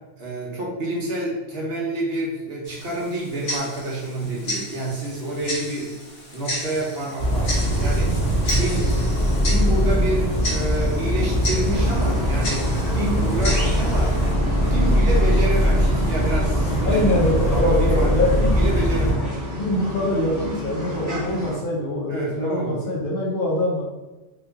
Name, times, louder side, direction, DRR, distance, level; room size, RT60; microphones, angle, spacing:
voice 1, 0.2-5.9 6.3-8.2 8.4-8.9 9.4-14.2 14.6-19.4 22.1-23.0, right 1 dB, 60° right, -3 dB, 0.9 m, -28 dB
Tick-tock, 2.6-14.3, left 1 dB, 80° left, 1.2 m, -33 dB
sound 1, 7.2-19.1, equal, 35° left, 1.1 m, -21 dB
sound 2, 11.7-21.6, left 1 dB, 15° right, 0.8 m, -31 dB
voice 2, 16.8-18.4 19.0-19.1 19.6-23.8, left 1 dB, 55° left, -4 dB, 0.7 m, -23 dB
2.9 x 2.3 x 3.4 m, 1.1 s
omnidirectional pair, 1.2 m